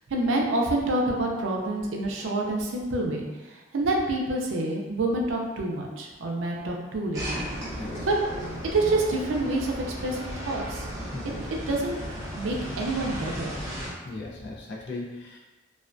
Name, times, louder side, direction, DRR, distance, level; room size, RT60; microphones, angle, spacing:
voice 1, 0.1-7.7 8.1-8.2 8.7-10.9 11.2-12.0 12.3-13.6, right 2 dB, 85° right, 0 dB, 0.4 m, -28 dB
sound 1, 7.1-13.9, equal, 15° right, 0.7 m, -35 dB
voice 2, 7.8-8.1 11.1-11.4 14.0-15.4, left 2 dB, 60° left, -4 dB, 0.4 m, -38 dB
2.3 x 2.2 x 2.4 m, 1.2 s
head